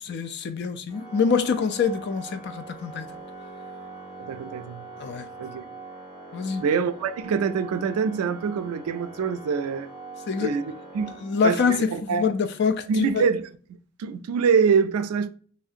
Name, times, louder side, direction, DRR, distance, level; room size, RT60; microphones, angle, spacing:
voice 1, 0.0-3.1 5.0-5.3 6.3-6.6 10.3-10.5 11.2-13.2, left 5 dB, 50° left, 0.3 m, -25 dB
Organ, 0.9-11.8, right 3 dB, 15° right, 0.9 m, -42 dB
voice 2, 4.2-4.8 5.4-5.6 6.6-9.9 10.4-10.6 10.9-12.3 12.9-13.5 14.0-15.3, right 6 dB, 85° right, 0.3 m, -25 dB
3.1 x 2.5 x 2.7 m
head